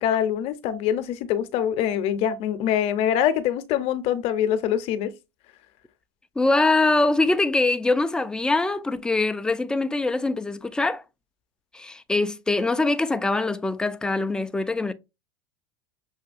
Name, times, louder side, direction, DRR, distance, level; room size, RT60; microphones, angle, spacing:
voice 1, 0.0-5.1, left 10 dB, 50° left, 0.8 m, -24 dB
voice 2, 6.4-11.0 11.7-14.9, left 2 dB, 5° left, 0.4 m, -23 dB
6.4 x 2.7 x 2.5 m
supercardioid pair, 125°, 13 cm